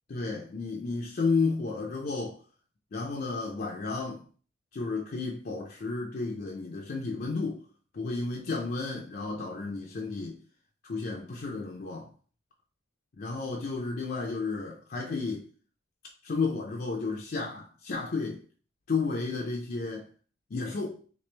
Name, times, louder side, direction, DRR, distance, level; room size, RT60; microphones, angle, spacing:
voice 1, 0.1-2.4 2.9-4.2 4.7-7.6 7.9-10.4 10.8-12.1 13.2-15.5 16.2-18.4 18.9-20.1 20.5-21.0, left 4 dB, 50° left, 0.4 m, -32 dB
3.2 x 3.1 x 3.2 m
head